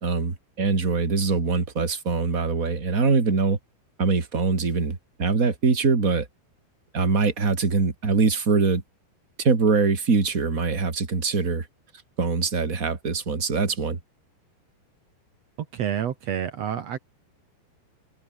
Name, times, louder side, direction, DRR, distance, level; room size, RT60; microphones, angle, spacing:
voice 1, 0.0-3.6 4.0-6.3 6.9-8.8 9.4-11.7 12.2-14.0, right 4 dB, 25° right, 2.3 m, -23 dB
voice 2, 15.6-17.0, right 9 dB, 80° right, 1.5 m, -29 dB
omnidirectional pair, 5.4 m